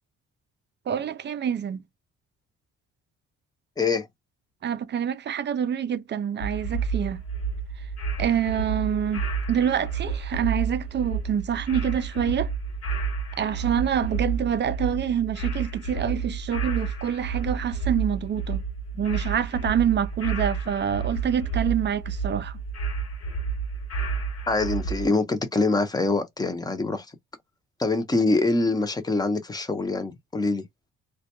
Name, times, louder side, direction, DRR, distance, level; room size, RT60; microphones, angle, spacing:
voice 1, 0.9-1.8 4.6-7.2 8.2-12.5 13.4-18.6 18.9-22.6, right 8 dB, 35° right, 0.4 m, -26 dB
voice 2, 3.8-4.1 24.5-27.1 27.8-30.7, left 3 dB, 15° left, 0.6 m, -24 dB
sound 1, 6.4-25.1, right 5 dB, 55° left, 1.1 m, -30 dB
2.2 x 2.1 x 2.9 m
cardioid pair, 90°, 30 cm